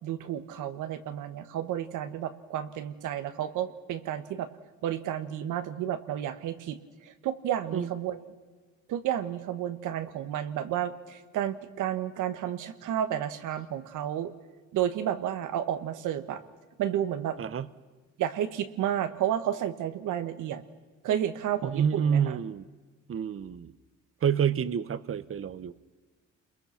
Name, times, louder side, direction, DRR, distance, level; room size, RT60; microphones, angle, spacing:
voice 1, 0.0-4.5 4.8-6.8 7.0-8.2 8.9-14.3 14.7-16.4 16.8-17.4 18.2-20.6 21.0-22.4, right 10 dB, 85° right, 10 dB, 1.6 m, -31 dB
voice 2, 21.6-22.7 23.1-23.7 24.2-25.7, right 8 dB, 45° right, 15 dB, 1.0 m, -28 dB
29.5 x 22.0 x 5.9 m, 1.4 s
cardioid pair, 90°, 30 cm